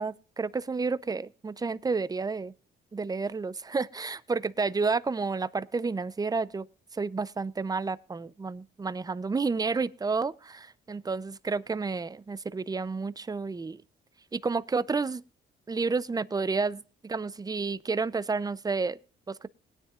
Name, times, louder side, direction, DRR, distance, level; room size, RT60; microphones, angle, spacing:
voice 1, 0.0-2.5 2.9-6.7 6.9-13.8 14.3-15.2 15.7-19.0 19.3-19.5, right 4 dB, 20° right, 0.5 m, -30 dB
20.0 x 10.0 x 2.4 m
cardioid pair, 90°, 20 cm